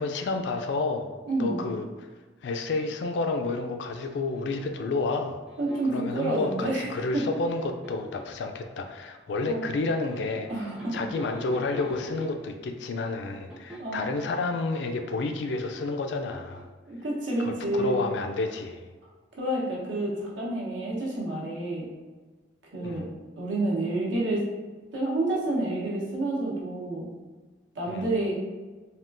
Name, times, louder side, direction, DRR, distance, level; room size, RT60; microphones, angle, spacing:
voice 1, 0.0-1.1 1.4-2.1 2.4-5.4 5.9-10.5 10.9-16.7 17.4-18.8 22.8-23.0 27.9-28.1, left 3 dB, 60° left, 5 dB, 0.3 m, -30 dB
voice 2, 1.3-1.6 5.6-6.9 7.1-7.2 9.4-9.7 10.5-11.0 13.8-14.1 16.9-18.0 19.4-21.9 22.7-23.1 23.4-24.4 24.9-27.1 27.7-28.3, right 2 dB, 75° right, -5 dB, 0.9 m, -29 dB
sound 1, 3.9-4.9 5.5-6.1 7.1-8.4 10.0-12.7 13.5-14.1 15.2-16.6, right 1 dB, 5° right, 0.5 m, -44 dB
3.5 x 2.4 x 2.5 m, 1.4 s
head